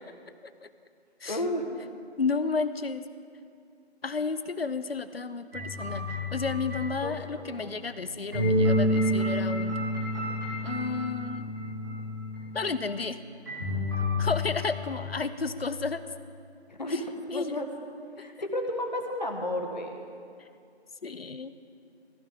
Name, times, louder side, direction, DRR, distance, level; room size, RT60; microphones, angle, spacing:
voice 1, 1.3-1.7 7.0-7.7 16.7-17.0 17.3-17.7 18.2-20.0, left 1 dB, 40° left, 3 dB, 1.3 m, -32 dB
voice 2, 2.2-3.1 4.0-9.8 10.6-11.5 12.5-13.2 14.2-16.0 16.9-17.0 17.3-17.6 21.0-21.6, left 4 dB, 60° left, 12 dB, 0.7 m, -32 dB
sound 1, 5.5-7.7 8.3-12.6 13.5-15.2, left 1 dB, 15° right, 2.0 m, -29 dB
15.5 x 14.0 x 3.7 m, 2.3 s
figure-of-eight pair, 175°, 34 cm